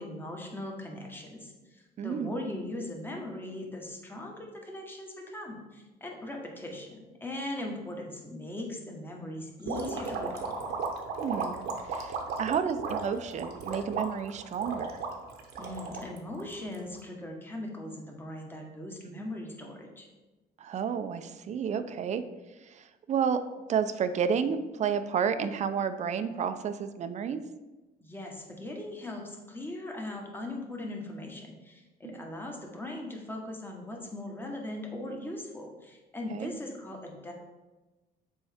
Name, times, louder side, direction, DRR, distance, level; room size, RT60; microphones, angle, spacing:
voice 1, 0.0-10.7 15.6-20.1 28.0-37.3, left 1 dB, 10° left, 1 dB, 1.2 m, -39 dB
voice 2, 2.0-2.4 11.2-11.6 11.9-15.0 19.0-19.2 20.6-22.2 22.6-23.4 23.7-27.4 32.0-32.2 36.3-36.5, right 7 dB, 45° right, 10 dB, 0.5 m, -31 dB
sound 1, 9.7-17.0, right 4 dB, 80° right, 1.0 m, -35 dB
7.0 x 4.6 x 3.5 m, 1.1 s
cardioid pair, 110°, 17 cm